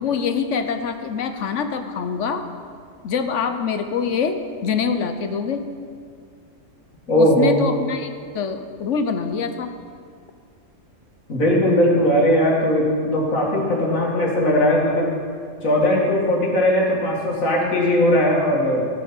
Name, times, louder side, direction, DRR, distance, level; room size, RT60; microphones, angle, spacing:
voice 1, 0.0-2.4 3.0-5.6 7.2-9.7, left 6 dB, 65° left, 8 dB, 1.1 m, -24 dB
voice 2, 7.1-7.6 11.3-15.1 15.6-18.9, left 1 dB, 85° left, -2 dB, 2.5 m, -19 dB
16.0 x 6.3 x 5.9 m, 2.2 s
omnidirectional pair, 1.4 m